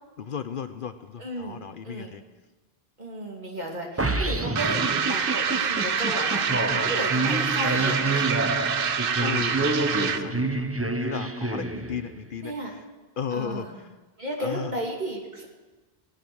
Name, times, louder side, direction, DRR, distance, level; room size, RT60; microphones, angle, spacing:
voice 1, 0.2-2.2 9.2-12.9 13.2-13.9 14.4-14.8, left 7 dB, 60° left, 10 dB, 0.8 m, -35 dB
voice 2, 1.2-2.2 3.0-8.3 12.4-12.7 13.3-13.7 14.2-15.5, right 1 dB, 45° right, -1 dB, 2.8 m, -34 dB
sound 1, 4.0-12.3, right 2 dB, 15° right, 0.6 m, -28 dB
sound 2, 4.6-10.3, right 7 dB, 65° right, 1.0 m, -26 dB
18.0 x 10.0 x 6.2 m, 1.2 s
omnidirectional pair, 1.1 m